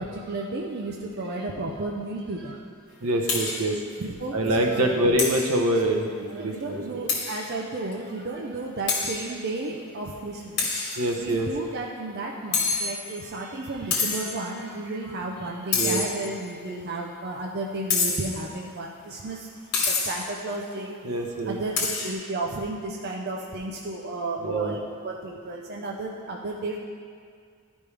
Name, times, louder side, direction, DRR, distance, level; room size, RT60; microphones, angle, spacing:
voice 1, 0.0-2.6 4.0-5.0 6.3-10.7 11.2-19.4 19.9-21.0 21.5-21.8 22.0-24.8 25.0-26.8, right 2 dB, 45° right, -1 dB, 0.5 m, -33 dB
voice 2, 3.0-3.8 4.3-7.0 11.0-11.5 15.7-16.0 21.0-21.6 24.4-24.8, right 1 dB, 75° right, 2 dB, 0.9 m, -25 dB
sound 1, 3.3-3.7 4.0-4.1 4.5-4.6 5.2-5.6 7.1-7.5 7.9-8.0 8.9-9.3 10.6-11.3 12.5-13.3 13.9-14.4 15.7-16.5 17.9-18.4 19.7-20.3 21.8-22.1, left 4 dB, 50° left, 1.8 m, -27 dB
12.0 x 5.2 x 3.3 m, 2.2 s
head